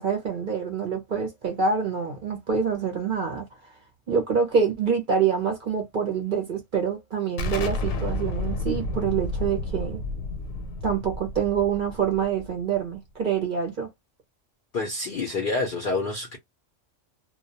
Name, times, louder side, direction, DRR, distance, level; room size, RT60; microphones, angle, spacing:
voice 1, 0.0-3.5 4.1-10.0 10.8-13.9, right 6 dB, 55° right, 0.6 m, -26 dB
Explosion, 7.4-12.8, left 2 dB, 85° left, 1.0 m, -31 dB
voice 2, 14.7-16.4, left 3 dB, 60° left, 0.5 m, -27 dB
2.2 x 2.1 x 2.6 m
omnidirectional pair, 1.3 m